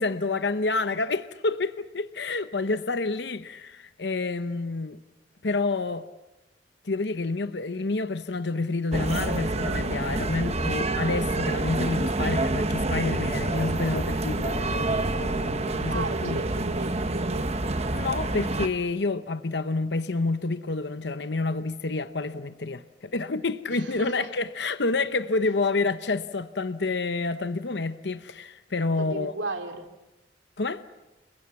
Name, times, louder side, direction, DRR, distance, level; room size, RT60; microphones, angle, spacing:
voice 1, 0.0-5.0 5.4-6.1 6.8-16.4 17.9-29.3 30.6-30.8, left 3 dB, 65° left, 0.9 m, -28 dB
sound 1, 8.9-18.7, right 2 dB, 35° right, 1.2 m, -27 dB
voice 2, 15.9-17.5 23.7-24.3 29.0-29.9, right 2 dB, 80° right, 3.0 m, -35 dB
29.5 x 22.5 x 7.1 m
head